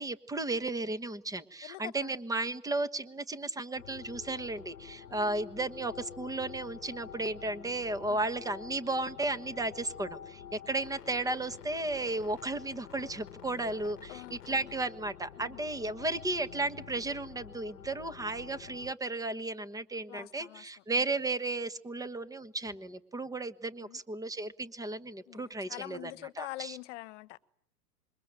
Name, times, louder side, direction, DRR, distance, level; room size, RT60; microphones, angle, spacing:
voice 1, 0.0-26.1 26.4-26.8, right 2 dB, 5° right, 1.3 m, -34 dB
voice 2, 1.6-2.1 5.0-5.4 8.1-8.2 14.1-14.7 15.4-15.6 20.1-21.1 23.8-24.0 25.3-27.4, left 18 dB, 50° left, 1.4 m, -46 dB
sound 1, 3.8-18.9, left 8 dB, 85° left, 1.1 m, -48 dB
26.5 x 23.0 x 8.9 m
hypercardioid pair, 120°, 46 cm